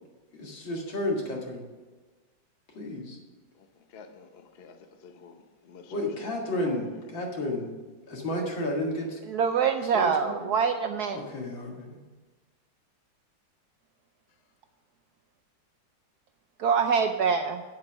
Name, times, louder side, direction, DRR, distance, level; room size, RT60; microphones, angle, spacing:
voice 1, 0.4-1.7 2.7-3.2 5.9-7.8 8.1-9.2 9.9-10.4 11.1-12.0, left 1 dB, 75° left, 2.7 m, -32 dB
voice 2, 3.5-7.1 14.3-14.4, left 5 dB, 50° left, 0.7 m, -51 dB
voice 3, 9.2-11.2 16.6-17.6, right 6 dB, 70° right, 0.9 m, -25 dB
8.8 x 7.6 x 6.1 m
omnidirectional pair, 2.2 m